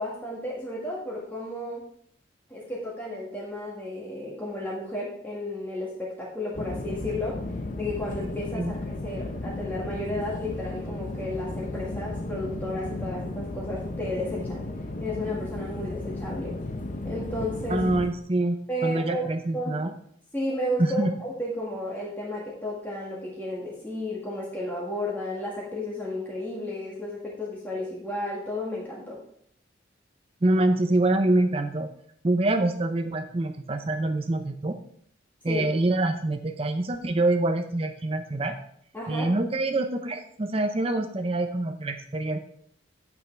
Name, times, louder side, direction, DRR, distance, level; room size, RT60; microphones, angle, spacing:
voice 1, 0.0-1.8 2.5-7.4 7.8-14.7 15.0-16.5 17.0-17.8 18.7-19.3 19.5-19.8 20.3-29.2 35.5-35.7 38.9-39.3, left 1 dB, 10° left, -5 dB, 1.8 m, -33 dB
sound 1, 6.5-18.1, left 2 dB, 40° left, 0.8 m, -34 dB
voice 2, 17.7-19.9 20.8-21.1 30.4-31.9 32.2-34.8 35.4-38.6 39.1-42.4, right 2 dB, 30° right, 7 dB, 0.6 m, -25 dB
10.0 x 8.2 x 3.4 m, 0.66 s
head